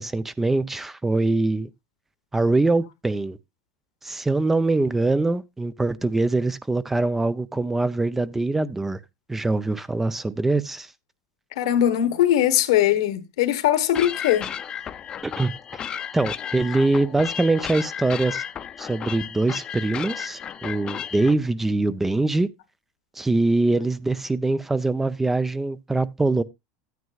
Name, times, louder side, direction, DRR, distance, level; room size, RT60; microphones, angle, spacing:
voice 1, 0.0-1.7 2.3-3.4 4.0-9.0 9.3-10.9 15.2-15.8 16.1-18.4 18.8-22.5 23.2-26.4, right 2 dB, 10° right, 0.5 m, -23 dB
voice 2, 11.6-14.5, left 11 dB, 85° left, 1.2 m, -20 dB
sound 1, 13.9-21.3, left 9 dB, 30° left, 0.6 m, -34 dB
13.0 x 9.3 x 2.3 m
supercardioid pair, 125°, 3 cm